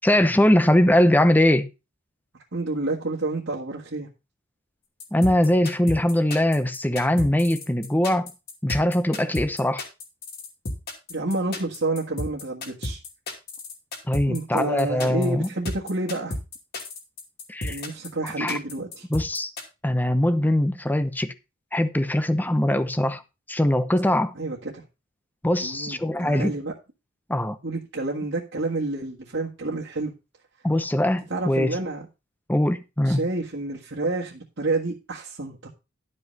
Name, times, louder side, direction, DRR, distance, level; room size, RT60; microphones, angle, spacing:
voice 1, 0.0-1.7 5.1-8.3 8.6-9.8 14.1-15.5 17.5-17.8 18.4-18.6 19.1-19.5 19.8-21.3 21.7-23.2 23.5-24.3 25.4-26.5 27.3-27.6 30.6-31.8 32.5-33.2, left 1 dB, 10° left, 0.7 m, -21 dB
voice 2, 2.5-4.1 11.1-13.0 14.3-16.3 17.6-19.1 24.3-24.8 25.6-26.7 27.6-30.1 31.3-32.0 33.0-35.7, right 2 dB, 60° right, 1.7 m, -29 dB
sound 1, 5.0-19.6, left 2 dB, 50° left, 2.6 m, -33 dB
11.5 x 5.4 x 5.3 m
head